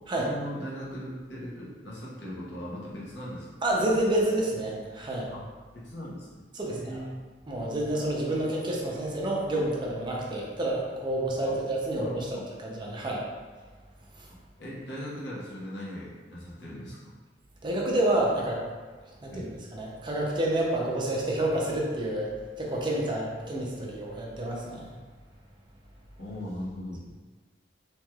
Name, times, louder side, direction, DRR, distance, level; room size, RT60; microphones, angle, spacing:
voice 1, 0.0-3.5 5.3-5.5 5.7-6.4 6.7-7.2 11.5-11.6 12.0-12.5 14.6-17.0 19.3-19.5 26.2-27.0, equal, 85° left, -7 dB, 0.9 m, -39 dB
voice 2, 3.6-5.3 6.5-7.0 7.5-12.3 12.6-13.2 14.2-14.3 17.6-18.6 19.2-22.3 22.6-24.9, right 1 dB, 25° right, -2 dB, 0.5 m, -29 dB
3.1 x 2.9 x 2.3 m, 1.4 s
head